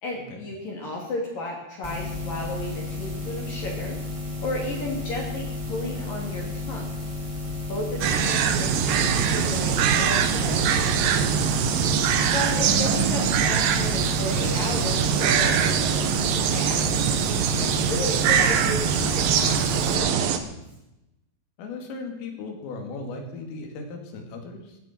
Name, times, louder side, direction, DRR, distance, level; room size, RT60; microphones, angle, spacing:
voice 1, 0.0-4.0 4.4-6.9 7.7-11.0 12.3-16.8 17.6-20.5, left 1 dB, 45° left, -1 dB, 4.3 m, -33 dB
sound 1, 1.8-19.9, left 2 dB, 15° right, 1.0 m, -33 dB
sound 2, 8.0-20.4, right 8 dB, 75° right, 2.0 m, -23 dB
voice 2, 21.6-24.8, left 3 dB, 85° left, 3 dB, 5.2 m, -37 dB
17.5 x 16.0 x 4.6 m, 0.92 s
omnidirectional pair, 5.7 m